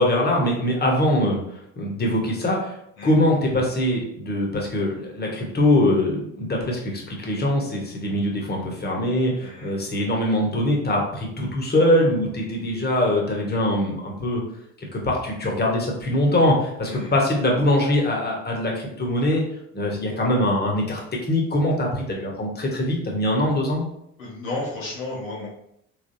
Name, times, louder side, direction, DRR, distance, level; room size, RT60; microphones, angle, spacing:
voice 1, 0.0-1.4 1.8-2.7 3.0-14.4 14.8-19.4 19.7-21.0 21.3-23.8, left 1 dB, 25° left, -1 dB, 1.2 m, -22 dB
voice 2, 9.4-9.7 16.8-17.2 24.2-25.5, left 2 dB, 90° left, -6 dB, 1.3 m, -33 dB
3.5 x 3.3 x 2.7 m, 0.75 s
hypercardioid pair, 55°, 39 cm